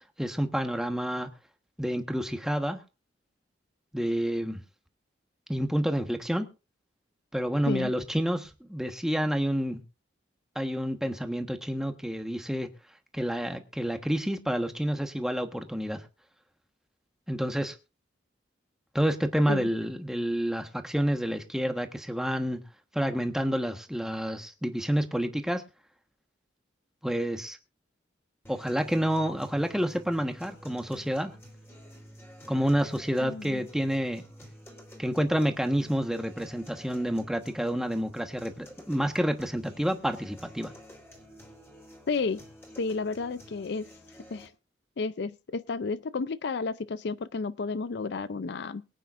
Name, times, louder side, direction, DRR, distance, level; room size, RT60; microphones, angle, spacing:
voice 1, 0.2-1.3 1.8-2.8 3.9-4.6 5.5-6.5 7.3-9.8 10.5-12.7 13.1-16.0 17.3-17.7 18.9-22.6 22.9-25.6 27.0-27.6 28.5-31.3 32.5-34.2 35.0-40.7, equal, 5° right, 1.3 m, -29 dB
sound 1, 28.5-44.5, equal, 15° left, 3.4 m, -50 dB
voice 2, 33.2-33.6 42.1-42.4 42.8-43.9 44.3-44.5 45.0-48.8, left 4 dB, 60° left, 0.5 m, -32 dB
23.0 x 9.1 x 2.5 m
head